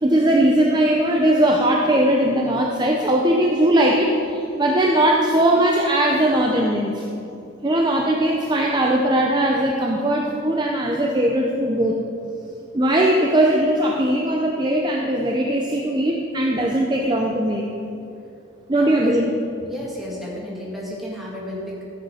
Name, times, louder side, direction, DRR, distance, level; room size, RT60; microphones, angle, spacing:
voice 1, 0.0-7.0 7.6-12.0 12.7-17.6 18.7-19.3, right 1 dB, 20° right, -1 dB, 0.6 m, -19 dB
voice 2, 18.7-19.2 19.7-21.8, equal, ahead, -5 dB, 2.1 m, -33 dB
14.5 x 6.5 x 5.0 m, 2.7 s
head